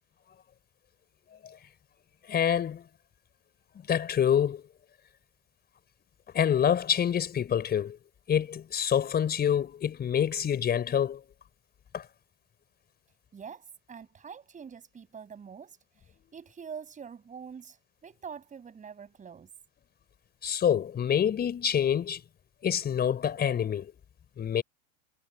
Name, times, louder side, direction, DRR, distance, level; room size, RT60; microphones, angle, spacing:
voice 1, 2.3-2.8 3.9-4.6 6.3-8.0 8.3-11.2 11.9-12.1 20.4-22.2 22.6-23.9 24.4-24.6, left 9 dB, 25° left, 4.7 m, -26 dB
voice 2, 13.3-19.5, right 6 dB, 20° right, 6.9 m, -45 dB
hypercardioid pair, 115°, 40 cm